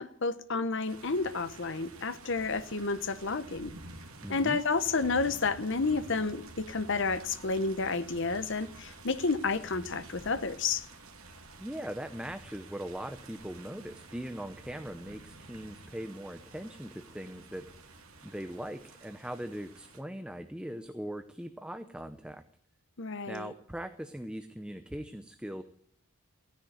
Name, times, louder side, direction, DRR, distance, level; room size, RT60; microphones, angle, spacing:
voice 1, 0.0-3.7 4.3-10.9 23.0-23.5, left 4 dB, 55° left, 0.9 m, -31 dB
sound 1, 0.9-20.0, right 2 dB, 75° right, 2.2 m, -50 dB
voice 2, 4.2-4.6 11.6-17.7 18.2-22.4 23.2-25.6, equal, 5° right, 0.7 m, -40 dB
16.0 x 10.5 x 8.9 m
head